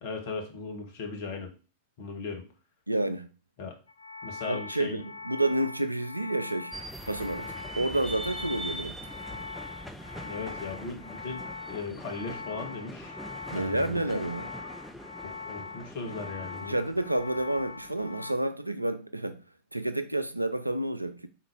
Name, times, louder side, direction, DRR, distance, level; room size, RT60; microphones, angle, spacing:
voice 1, 0.0-1.5 2.0-2.4 3.6-3.8 4.2-5.0 10.2-13.2 13.5-14.0 15.2-16.7, left 4 dB, 50° left, 1.1 m, -37 dB
voice 2, 2.9-3.3 4.5-6.7 7.1-7.5 7.8-9.0 13.5-14.5 16.7-19.4 19.7-21.3, right 1 dB, 85° right, 0.4 m, -29 dB
sound 1, 3.9-18.3, left 4 dB, 75° left, 0.3 m, -42 dB
sound 2, 6.7-18.3, equal, ahead, 0.5 m, -43 dB
3.8 x 2.9 x 4.5 m
figure-of-eight pair, 90°, 0 cm